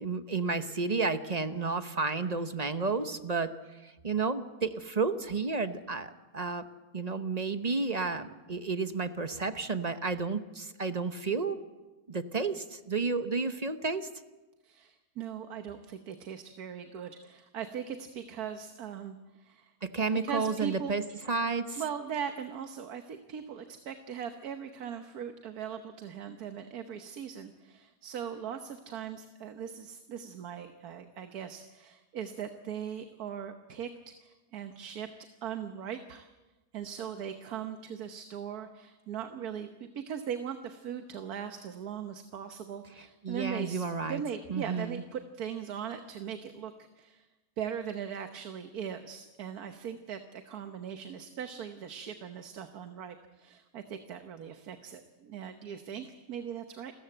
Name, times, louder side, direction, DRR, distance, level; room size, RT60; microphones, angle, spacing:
voice 1, 0.0-3.5 3.8-6.7 6.9-11.6 12.1-14.1 19.8-21.0 21.3-21.8 43.2-44.2 44.5-45.0, right 4 dB, 30° right, 10 dB, 0.9 m, -31 dB
voice 2, 14.6-19.7 20.2-20.9 21.8-35.1 35.4-36.3 36.7-47.3 47.6-56.9, right 8 dB, 90° right, 7 dB, 1.6 m, -40 dB
29.0 x 14.5 x 7.9 m, 1.1 s
omnidirectional pair, 1.6 m